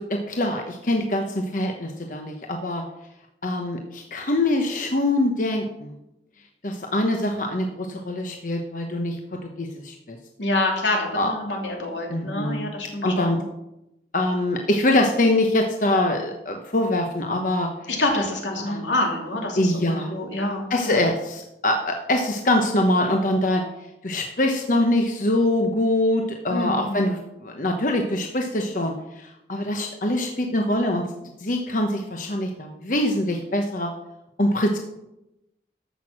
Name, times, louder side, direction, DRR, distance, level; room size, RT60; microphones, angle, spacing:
voice 1, 0.0-2.8 3.4-5.9 6.6-9.2 9.6-10.2 11.1-11.3 12.1-12.7 13.0-13.4 14.1-17.7 18.6-18.8 19.6-20.1 20.7-23.6 24.0-31.0 31.4-33.9 34.4-34.8, left 1 dB, 45° left, 3 dB, 1.0 m, -24 dB
voice 2, 10.4-13.4 17.9-21.0 26.5-26.9, left 2 dB, 85° left, 0 dB, 3.0 m, -27 dB
14.0 x 6.2 x 6.0 m, 0.89 s
head